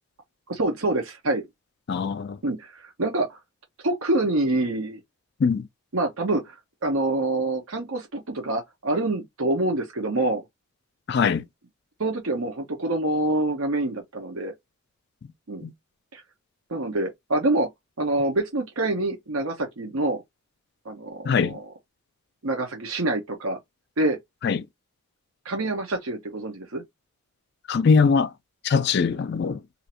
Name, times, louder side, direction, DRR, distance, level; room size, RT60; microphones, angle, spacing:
voice 1, 0.5-1.4 2.4-3.4 3.8-5.0 5.9-6.6 6.8-10.4 12.0-14.5 15.5-15.7 16.1-16.2 16.7-17.7 18.0-20.2 20.8-21.6 22.4-23.6 24.0-24.2 25.4-26.8, right 2 dB, 70° right, 0.9 m, -26 dB
voice 2, 1.9-2.4 5.4-5.7 11.1-11.4 15.6-15.7 21.2-21.6 24.4-24.6 27.7-28.3 28.6-29.6, left 5 dB, 50° left, 0.3 m, -21 dB
2.7 x 2.5 x 4.2 m
head